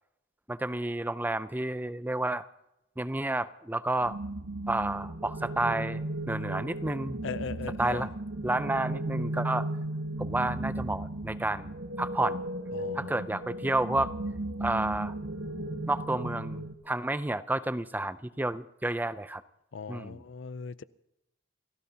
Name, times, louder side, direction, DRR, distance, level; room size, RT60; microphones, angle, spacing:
voice 1, 0.5-2.4 3.0-4.2 4.7-7.2 7.8-8.1 8.4-9.7 10.2-12.4 12.9-14.1 14.6-15.1 15.9-19.4 19.9-20.2, right 2 dB, 10° right, 0.5 m, -30 dB
sound 1, 4.0-16.7, right 1 dB, 75° right, 1.3 m, -35 dB
voice 2, 7.2-8.1 12.7-13.2 19.7-20.8, left 5 dB, 65° left, 0.5 m, -39 dB
30.0 x 15.0 x 2.9 m
head